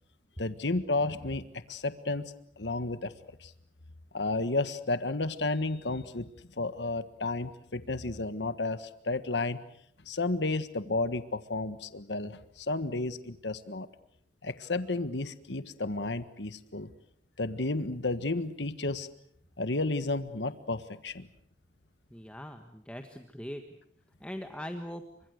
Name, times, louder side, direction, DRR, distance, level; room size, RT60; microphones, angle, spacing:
voice 1, 0.4-3.1 3.4-3.5 4.1-6.3 6.6-9.6 10.1-13.9 14.4-16.9 17.4-19.1 19.6-21.3, left 2 dB, 85° left, 12 dB, 1.5 m, -32 dB
voice 2, 22.1-23.6 24.2-25.0, equal, 5° left, 5 dB, 1.5 m, -41 dB
29.0 x 25.0 x 6.5 m, 0.66 s
head